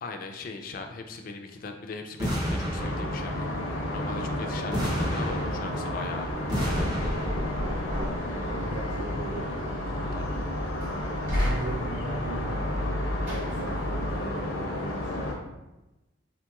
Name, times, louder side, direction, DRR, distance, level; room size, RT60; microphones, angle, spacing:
voice 1, 0.0-3.5 3.9-7.3 10.1-10.4, left 4 dB, 45° left, 5 dB, 0.3 m, -39 dB
sound 1, 2.2-3.5 4.7-6.0 6.5-7.6, equal, 20° right, 0.6 m, -30 dB
sound 2, 2.8-15.4, left 1 dB, 85° left, 0.6 m, -32 dB
voice 2, 4.0-4.7 7.6-9.5 11.3-12.9 13.2-15.5, right 2 dB, 75° right, -2 dB, 0.4 m, -39 dB
Knock, 6.3-14.2, left 1 dB, 40° right, 1.3 m, -33 dB
3.6 x 2.9 x 2.3 m, 1.0 s
head